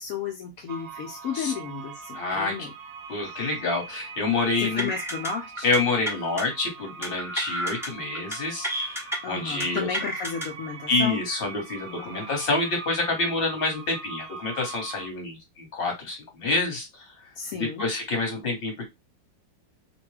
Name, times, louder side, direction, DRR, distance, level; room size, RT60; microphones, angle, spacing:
voice 1, 0.0-2.7 3.2-3.5 4.6-5.7 9.2-11.2 12.0-12.3 17.4-17.8, left 6 dB, 75° left, 0.8 m, -33 dB
sound 1, 0.7-15.1, right 5 dB, 70° right, 1.3 m, -42 dB
voice 2, 2.1-2.5 3.1-4.9 5.6-9.9 10.9-17.0 17.5-18.9, left 3 dB, 35° left, 1.1 m, -27 dB
sound 2, 4.8-5.3 5.6-5.8 6.1-6.4 7.0-7.9 8.1-8.4 8.6-9.2 9.6-10.5, equal, 5° right, 0.3 m, -30 dB
2.9 x 2.2 x 3.2 m
omnidirectional pair, 2.0 m